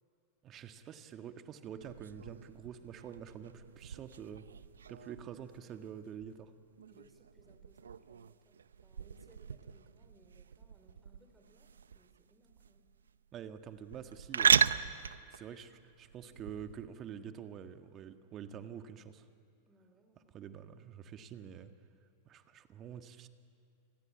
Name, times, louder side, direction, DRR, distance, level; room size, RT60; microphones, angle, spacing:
voice 1, 0.4-4.5 4.9-6.5 13.3-14.6 15.3-19.3 20.3-21.7 22.3-23.3, right 8 dB, 35° right, 8 dB, 1.7 m, -47 dB
sound 1, 1.8-16.9, right 7 dB, 85° right, 0.6 m, -37 dB
voice 2, 6.9-12.9 19.7-20.4, right 2 dB, 15° right, 6 dB, 3.7 m, -66 dB
29.5 x 21.5 x 8.7 m, 2.5 s
hypercardioid pair, 100°, 0 cm